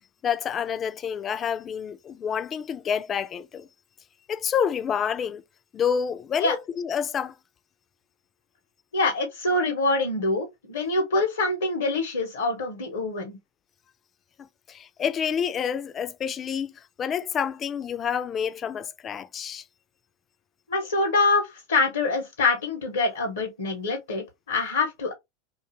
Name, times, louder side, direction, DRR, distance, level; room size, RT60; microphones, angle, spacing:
voice 1, 0.2-3.7 4.3-5.4 5.7-7.3 14.4-19.6, left 7 dB, 35° left, 0.3 m, -28 dB
voice 2, 8.9-13.4 20.7-25.1, left 3 dB, 90° left, 0.7 m, -25 dB
2.4 x 2.3 x 2.8 m
hypercardioid pair, 95°, 0 cm